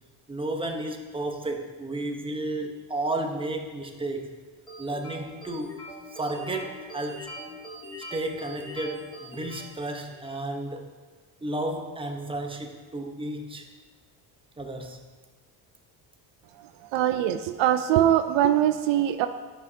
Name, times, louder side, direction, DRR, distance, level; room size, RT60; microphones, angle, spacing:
voice 1, 0.3-4.3 4.8-5.8 6.1-7.3 8.1-10.9 11.4-13.7 14.6-15.0, right 2 dB, 10° right, 3 dB, 0.9 m, -32 dB
sound 1, 4.7-10.4, left 1 dB, 10° left, 1.9 m, -42 dB
voice 2, 16.9-19.3, right 11 dB, 70° right, 9 dB, 0.5 m, -22 dB
11.0 x 5.3 x 2.8 m, 1.4 s
supercardioid pair, 80°, 48 cm